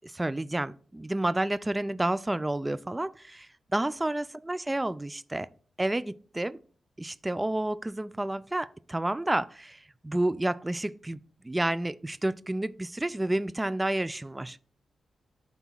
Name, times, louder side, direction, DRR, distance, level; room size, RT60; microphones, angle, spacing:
voice 1, 0.0-5.5 5.8-6.6 7.0-9.8 10.0-11.2 11.4-14.6, right 1 dB, 20° right, 0.4 m, -30 dB
9.3 x 3.5 x 5.9 m
cardioid pair, 60°, 0 cm